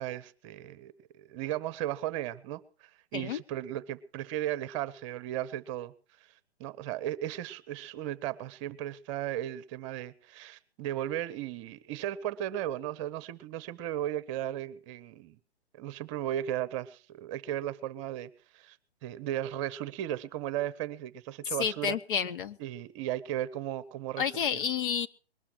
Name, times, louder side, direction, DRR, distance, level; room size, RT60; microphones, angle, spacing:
voice 1, 0.0-5.9 6.6-15.4 15.7-18.8 19.0-22.0 22.6-24.6, right 12 dB, 30° right, 17 dB, 1.0 m, -36 dB
voice 2, 21.6-22.6 24.2-25.1, left 8 dB, 50° left, 12 dB, 1.0 m, -30 dB
21.5 x 18.5 x 3.0 m, 0.37 s
figure-of-eight pair, 130°, 32 cm